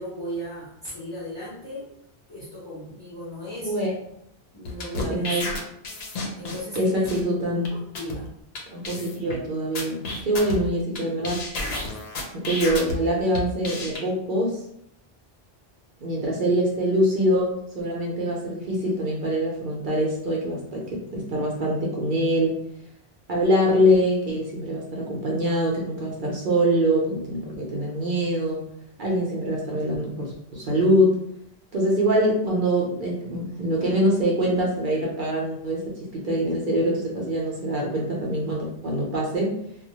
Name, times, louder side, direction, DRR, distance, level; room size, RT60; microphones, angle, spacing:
voice 1, 0.0-1.9 2.3-3.8 4.5-5.3 6.3-7.1 7.5-8.3, equal, 30° left, -9 dB, 0.6 m, -36 dB
voice 2, 3.6-3.9 4.9-5.7 6.8-7.7 8.7-11.5 12.3-14.6 16.0-22.6 23.3-28.6 29.0-31.1 31.7-39.6, equal, 60° right, -2 dB, 0.7 m, -24 dB
sound 1, 4.7-6.8 7.1-7.2 7.7-7.8 8.0-8.2 8.6-8.7 8.8-9.4 9.8-11.0 11.2-13.0 13.3-14.0, left 2 dB, 75° left, 0.8 m, -31 dB
2.1 x 2.1 x 2.8 m, 0.74 s
omnidirectional pair, 1.1 m